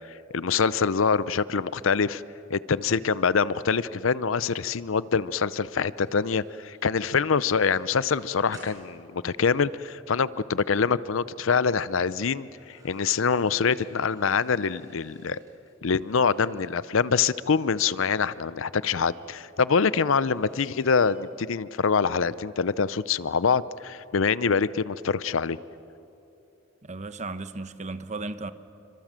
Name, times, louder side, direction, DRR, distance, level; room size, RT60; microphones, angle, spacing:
voice 1, 0.3-2.2 2.5-15.4 15.8-25.6, left 5 dB, 75° left, 0.6 m, -25 dB
sound 1, 5.8-10.1 10.5-10.8 12.4-18.5 19.8-21.1, right 1 dB, 20° right, 6.2 m, -57 dB
voice 2, 26.8-28.5, right 3 dB, 35° right, 1.0 m, -35 dB
28.0 x 25.5 x 7.5 m
head